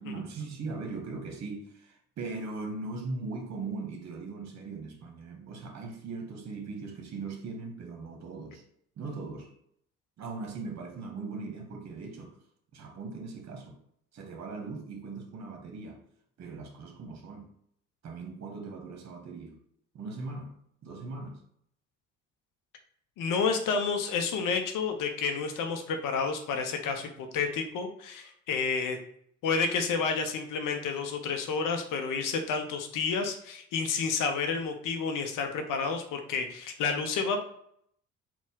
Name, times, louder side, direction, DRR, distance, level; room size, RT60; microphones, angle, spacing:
voice 1, 0.0-8.6 9.0-9.5 10.2-12.3 12.7-13.8 14.1-16.0 16.4-17.5 18.0-19.6 19.9-20.5 20.8-21.4, right 3 dB, 40° right, 1.2 m, -39 dB
voice 2, 23.2-29.0 29.4-37.4, left 5 dB, 50° left, 0.7 m, -30 dB
4.0 x 2.4 x 3.8 m
figure-of-eight pair, 45°, 40 cm